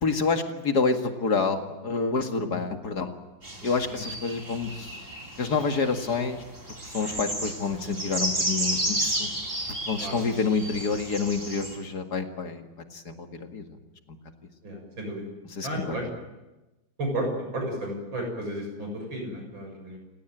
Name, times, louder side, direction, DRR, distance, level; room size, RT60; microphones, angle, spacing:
voice 1, 0.0-3.1 3.6-5.0 5.4-6.4 6.8-9.3 9.9-12.6 12.9-13.6 15.5-16.0, left 4 dB, 55° left, 5 dB, 2.5 m, -28 dB
sound 1, 3.4-11.8, right 1 dB, 30° right, 4.2 m, -32 dB
voice 2, 14.6-15.2 15.6-16.1 17.0-17.3 17.5-20.0, right 1 dB, 80° right, 2 dB, 7.8 m, -33 dB
29.5 x 17.0 x 9.2 m, 1.1 s
omnidirectional pair, 2.1 m